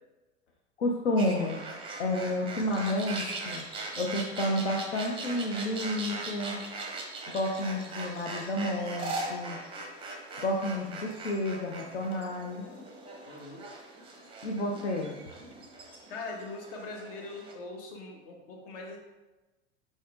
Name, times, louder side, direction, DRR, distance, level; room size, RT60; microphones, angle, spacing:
voice 1, 0.8-1.6 2.0-3.6 3.9-6.6 7.3-9.6 10.4-12.6 14.4-15.2, left 1 dB, 75° left, 0 dB, 0.6 m, -30 dB
sound 1, 1.2-17.5, right 2 dB, 15° right, 0.6 m, -40 dB
voice 2, 13.2-13.7 16.1-19.0, left 3 dB, 50° left, 1 dB, 1.0 m, -42 dB
4.9 x 4.1 x 2.4 m, 1.1 s
figure-of-eight pair, 80°, 35 cm